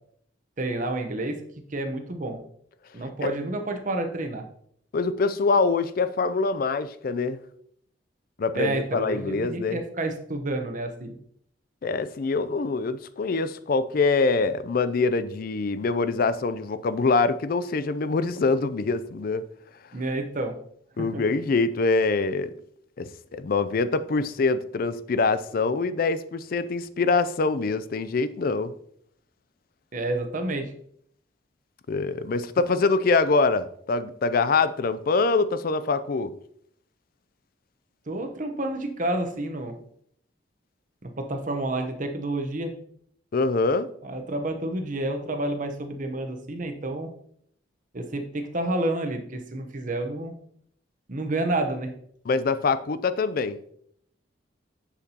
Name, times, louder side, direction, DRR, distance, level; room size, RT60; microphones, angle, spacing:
voice 1, 0.6-1.4 1.7-2.4 2.9-4.4 8.5-11.1 19.9-20.5 21.0-21.2 29.9-30.7 38.1-39.7 41.0-42.7 44.0-47.1 47.9-50.3 51.1-51.9, right 2 dB, 45° right, 0.9 m, -29 dB
voice 2, 4.9-7.4 8.4-9.8 11.8-19.4 21.0-22.5 23.0-28.7 31.9-36.3 43.3-43.9 52.3-53.6, left 4 dB, 50° left, 0.4 m, -24 dB
7.3 x 6.7 x 2.9 m
head